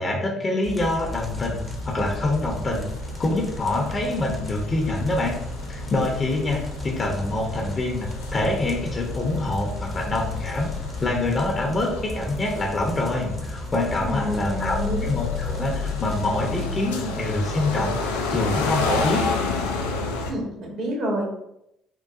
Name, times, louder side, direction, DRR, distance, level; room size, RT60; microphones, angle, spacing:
voice 1, 0.0-2.9 3.2-5.4 5.7-10.7 11.0-19.2, left 2 dB, 35° left, 0 dB, 0.7 m, -26 dB
sound 1, 0.6-16.7, left 1 dB, 5° right, 0.7 m, -35 dB
sound 2, 0.9-20.3, left 3 dB, 80° left, 0.3 m, -32 dB
voice 2, 14.0-15.1 20.3-21.3, equal, 55° right, -2 dB, 1.2 m, -28 dB
3.7 x 2.2 x 2.4 m, 0.81 s
figure-of-eight pair, 50°, 0 cm